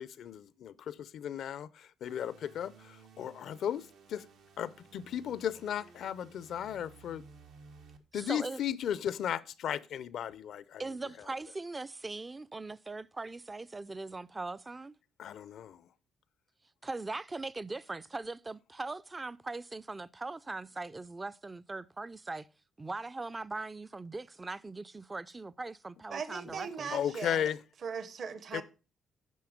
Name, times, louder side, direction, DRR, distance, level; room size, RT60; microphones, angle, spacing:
voice 1, 0.0-3.8 4.1-4.3 4.6-7.2 8.1-10.8 15.2-15.8 26.9-27.6 28.5-28.6, left 9 dB, 70° left, 0.5 m, -35 dB
sound 1, 2.0-8.0, right 5 dB, 85° right, 1.4 m, -57 dB
voice 2, 8.1-8.6 10.8-14.9 16.8-22.5 22.8-26.9, right 3 dB, 20° right, 0.4 m, -40 dB
voice 3, 26.1-27.5 27.8-28.6, right 6 dB, 55° right, 1.0 m, -39 dB
9.3 x 5.7 x 4.9 m
cardioid pair, 90°, 0 cm